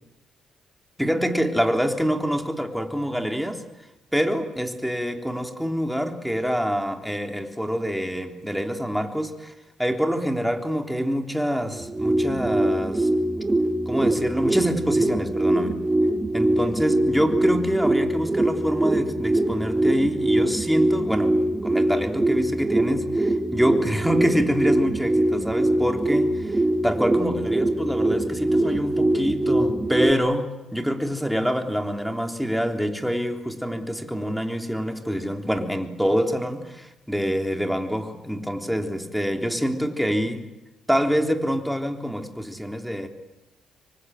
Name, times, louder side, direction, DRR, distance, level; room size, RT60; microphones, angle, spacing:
voice 1, 1.0-3.6 4.1-9.5 9.8-13.1 13.9-15.8 16.3-40.4 40.9-43.1, equal, ahead, 4 dB, 3.5 m, -26 dB
sound 1, 11.7-30.1, right 1 dB, 15° right, 2.0 m, -23 dB
27.0 x 23.5 x 9.3 m, 0.99 s
cardioid pair, 90°, 0 cm